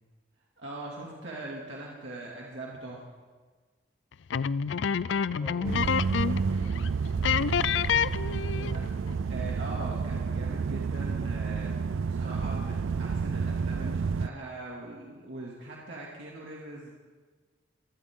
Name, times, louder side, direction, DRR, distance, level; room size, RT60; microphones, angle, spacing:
voice 1, 0.6-3.1 9.3-16.9, right 2 dB, 65° right, -4 dB, 2.5 m, -41 dB
sound 1, 4.3-6.5 6.8-6.9 7.2-8.9, left 7 dB, 70° left, 0.4 m, -28 dB
voice 2, 5.4-7.3 8.4-9.1, equal, 10° right, -4 dB, 2.3 m, -44 dB
sound 2, 5.6-14.3, right 5 dB, 80° right, 0.4 m, -30 dB
24.0 x 15.0 x 3.8 m, 1.4 s
head